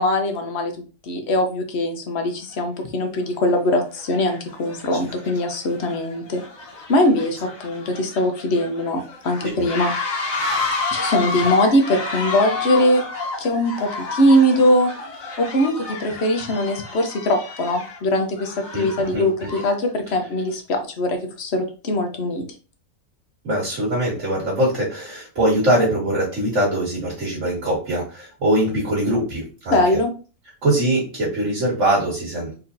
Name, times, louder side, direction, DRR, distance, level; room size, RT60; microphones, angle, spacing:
voice 1, 0.0-6.4 6.9-10.3 10.9-13.0 13.4-14.9 15.4-22.4 29.7-30.1, left 1 dB, 55° left, 5 dB, 1.1 m, -21 dB
sound 1, 2.5-2.6 3.3-3.6 3.9-19.9, left 3 dB, 80° left, 1.6 m, -30 dB
voice 2, 23.4-29.8 30.6-32.5, right 1 dB, 65° right, -5 dB, 2.3 m, -22 dB
4.2 x 4.1 x 2.6 m, 0.36 s
omnidirectional pair, 1.4 m